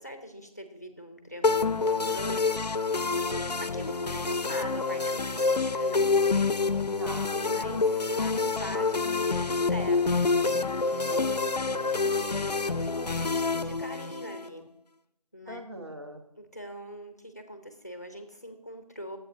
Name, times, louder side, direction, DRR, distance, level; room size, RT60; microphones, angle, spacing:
voice 1, 0.0-2.6 3.6-6.1 7.2-10.3 12.1-14.7 15.3-15.6 16.4-19.2, equal, 25° left, 7 dB, 0.7 m, -42 dB
sound 1, 1.4-14.5, left 4 dB, 80° left, 0.6 m, -27 dB
voice 2, 5.8-6.2 7.0-7.5 11.1-12.1 15.5-16.2, equal, 40° right, 3 dB, 1.4 m, -41 dB
14.5 x 7.9 x 2.7 m, 0.84 s
figure-of-eight pair, 175°, 20 cm